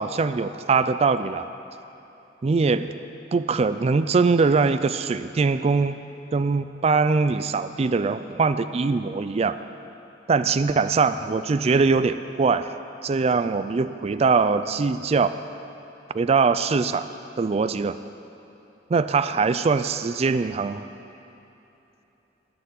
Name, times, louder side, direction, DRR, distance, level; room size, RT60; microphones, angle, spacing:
voice 1, 0.0-1.5 2.4-3.0 3.3-6.0 6.3-9.6 10.3-12.7 13.0-15.4 16.1-17.1 17.4-18.0 18.9-20.9, right 4 dB, 35° right, 12 dB, 0.4 m, -22 dB
12.0 x 7.0 x 9.3 m, 3.0 s
head